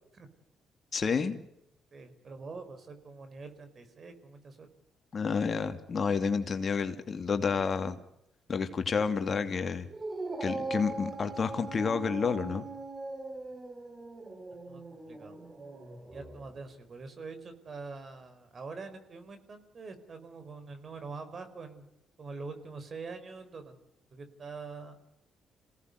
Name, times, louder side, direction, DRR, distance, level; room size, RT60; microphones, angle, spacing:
voice 1, 0.9-1.4 5.1-8.0 8.5-9.9 10.4-12.7, left 5 dB, 45° left, 7 dB, 2.7 m, -30 dB
voice 2, 1.9-4.7 14.7-14.8 15.1-15.4 16.1-21.9 22.2-23.7 24.1-25.0, right 4 dB, 45° right, 9 dB, 4.6 m, -44 dB
Dog, 9.9-16.5, right 3 dB, 30° right, 4.8 m, -40 dB
27.5 x 18.0 x 8.1 m, 0.84 s
supercardioid pair, 60°, 0 cm